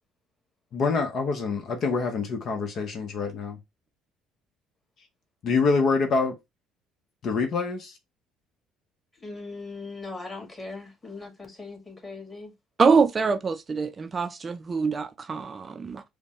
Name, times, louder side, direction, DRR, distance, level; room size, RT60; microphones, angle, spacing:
voice 1, 0.7-3.6 5.4-6.4 7.2-8.0, left 4 dB, 55° left, 0.8 m, -26 dB
voice 2, 9.2-12.5, left 3 dB, 20° left, 2.0 m, -39 dB
voice 3, 12.8-16.0, right 5 dB, 35° right, 0.4 m, -24 dB
5.1 x 2.2 x 3.0 m
supercardioid pair, 70°, 0 cm